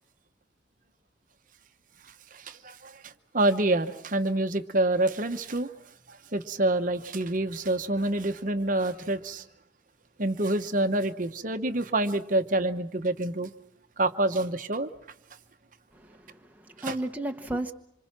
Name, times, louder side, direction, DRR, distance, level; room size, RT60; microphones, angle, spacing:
voice 1, 2.3-5.7 6.1-9.4 10.2-13.5 14.0-14.9 16.8-17.0, right 2 dB, 45° right, 1.0 m, -27 dB
voice 2, 15.9-17.7, right 1 dB, 10° right, 1.0 m, -34 dB
26.5 x 26.0 x 6.0 m
head